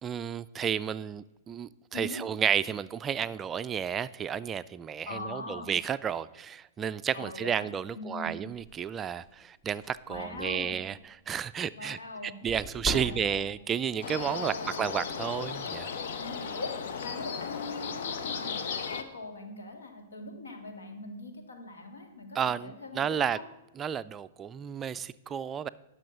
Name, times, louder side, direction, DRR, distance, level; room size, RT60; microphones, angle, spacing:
voice 1, 0.0-15.9 22.3-23.4 23.8-25.7, right 8 dB, 20° right, 14 dB, 0.3 m, -32 dB
voice 2, 5.1-5.7 7.1-7.7 7.9-8.4 10.1-10.8 11.8-12.3 12.9-13.4 14.3-14.7 16.2-23.5, left 2 dB, 90° left, 4 dB, 2.1 m, -41 dB
sound 1, 8.5-8.8 9.3-9.4 9.7-10.8 12.5-13.7, equal, 25° left, 1.4 m, -38 dB
sound 2, 14.0-19.0, left 6 dB, 65° left, 0.9 m, -36 dB
10.5 x 6.2 x 6.6 m, 0.97 s
hypercardioid pair, 125°, 0 cm